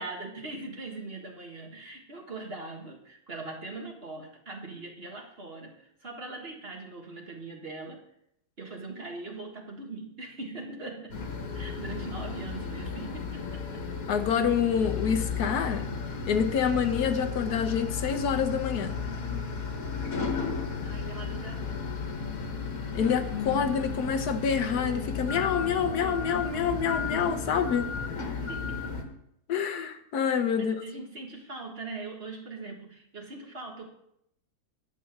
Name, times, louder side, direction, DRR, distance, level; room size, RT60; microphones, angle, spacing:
voice 1, 0.0-8.0 8.6-11.2 11.5-13.6 20.8-21.9 28.4-29.0 30.6-33.9, right 3 dB, 40° right, 1 dB, 1.9 m, -41 dB
sound 1, 11.1-29.0, left 5 dB, 65° left, 1.8 m, -34 dB
voice 2, 14.1-15.9 16.3-19.0 22.9-27.9 28.2-28.4 29.5-30.8, left 7 dB, 80° left, 8 dB, 1.4 m, -27 dB
10.5 x 7.4 x 5.9 m, 0.76 s
omnidirectional pair, 1.6 m